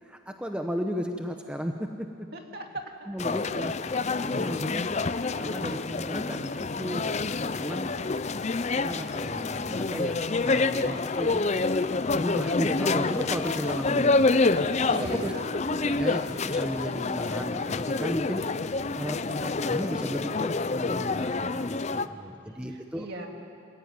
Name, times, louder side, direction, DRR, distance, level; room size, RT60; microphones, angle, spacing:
voice 1, 0.0-2.1 3.1-3.7 4.2-4.8 5.4-8.0 8.7-11.4 12.1-14.3 14.9-15.3 15.7-18.4 18.7-23.1, equal, 5° right, 4 dB, 0.9 m, -35 dB
voice 2, 2.3-2.8 13.8-14.3 14.9-15.6 18.8-19.1 21.9-23.3, right 1 dB, 50° right, 2 dB, 2.4 m, -40 dB
sound 1, 3.2-22.1, left 3 dB, 35° left, 0.5 m, -27 dB
26.5 x 16.0 x 9.5 m, 2.5 s
head